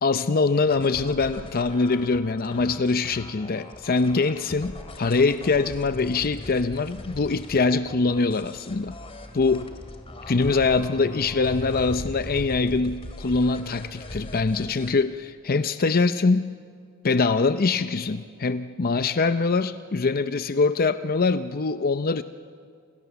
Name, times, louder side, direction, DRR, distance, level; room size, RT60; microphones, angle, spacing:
voice 1, 0.0-9.0 9.3-9.7 10.3-16.5 17.0-22.2, left 4 dB, 45° left, 11 dB, 0.6 m, -23 dB
sound 1, 0.7-14.9, left 1 dB, 25° left, 2.3 m, -40 dB
29.0 x 28.5 x 7.1 m, 2.2 s
head